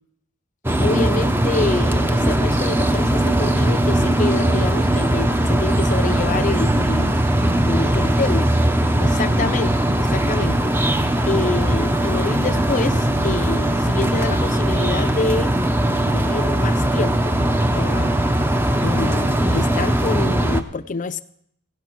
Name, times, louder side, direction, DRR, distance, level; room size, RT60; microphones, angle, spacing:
sound 1, 0.6-20.6, right 1 dB, 10° right, 0.5 m, -19 dB
voice 1, 0.8-7.2 7.6-8.4 9.0-9.7 10.0-10.7 11.3-15.5 16.1-17.4 17.7-18.1 18.8-21.2, left 3 dB, 35° left, 12 dB, 0.5 m, -26 dB
16.0 x 11.0 x 4.5 m, 0.70 s
head